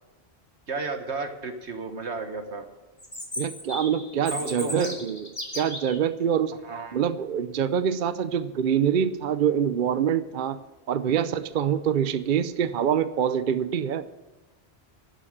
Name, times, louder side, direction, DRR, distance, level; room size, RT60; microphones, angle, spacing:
voice 1, 0.7-2.6 4.3-5.0 6.6-7.1, right 3 dB, 85° right, 6 dB, 1.8 m, -33 dB
Chirp tweet, 3.0-6.0, left 1 dB, 30° left, 2.6 m, -35 dB
voice 2, 3.4-5.3 5.5-6.5 6.9-10.6 10.9-14.0, right 8 dB, 55° right, 13 dB, 0.8 m, -25 dB
11.5 x 11.5 x 7.3 m, 1.1 s
omnidirectional pair, 1.1 m